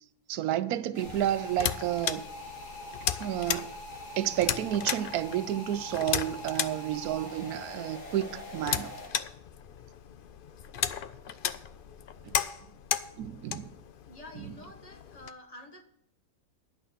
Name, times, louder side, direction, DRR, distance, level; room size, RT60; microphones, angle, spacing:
voice 1, 0.3-2.2 3.2-3.7 4.2-8.9 12.3-12.4 13.2-13.7, right 12 dB, 85° right, 1.1 m, -31 dB
sound 1, 0.9-9.1, left 1 dB, 60° left, 2.4 m, -43 dB
sound 2, 1.0-15.3, left 9 dB, 80° left, 0.4 m, -36 dB
voice 2, 14.1-15.8, left 2 dB, 25° left, 1.2 m, -48 dB
11.0 x 6.0 x 8.0 m
omnidirectional pair, 1.6 m